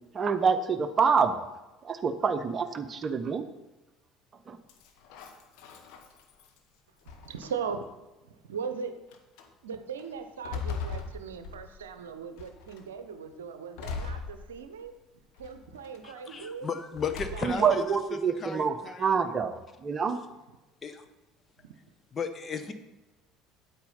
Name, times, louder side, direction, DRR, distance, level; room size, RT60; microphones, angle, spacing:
voice 1, 0.1-1.5 1.8-3.5 4.5-4.6 17.4-20.2, right 6 dB, 30° right, 9 dB, 0.9 m, -27 dB
sound 1, 4.7-6.6 7.1-7.8 8.5-8.6 9.1-9.5 10.0-11.9 12.4-12.9 13.8-14.9 15.4-16.0 16.9-17.8, left 5 dB, 60° left, 1.2 m, -40 dB
voice 2, 7.1-7.8 8.3-9.0 9.6-14.9 15.4-16.7 17.3-17.7, right 6 dB, 75° right, 9 dB, 0.8 m, -39 dB
voice 3, 16.0-19.3 20.8-21.0 22.1-22.7, left 5 dB, 30° left, 8 dB, 1.1 m, -35 dB
8.8 x 8.8 x 5.6 m, 1.1 s
figure-of-eight pair, 60°, 0 cm